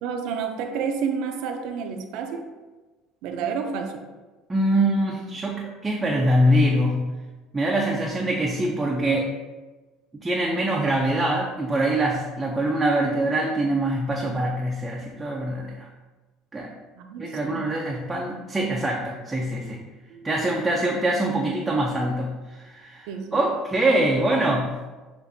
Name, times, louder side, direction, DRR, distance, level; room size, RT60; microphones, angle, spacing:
voice 1, 0.0-2.5 3.2-4.0 17.0-17.7 19.6-19.7 20.1-20.3 23.1-23.4, right 6 dB, 75° right, 4 dB, 0.6 m, -30 dB
voice 2, 4.5-7.1 7.5-9.4 10.1-15.9 16.5-16.7 17.2-19.8 20.2-24.8, right 1 dB, 15° right, -2 dB, 0.5 m, -24 dB
6.9 x 2.6 x 2.6 m, 1.2 s
cardioid pair, 120°, 0 cm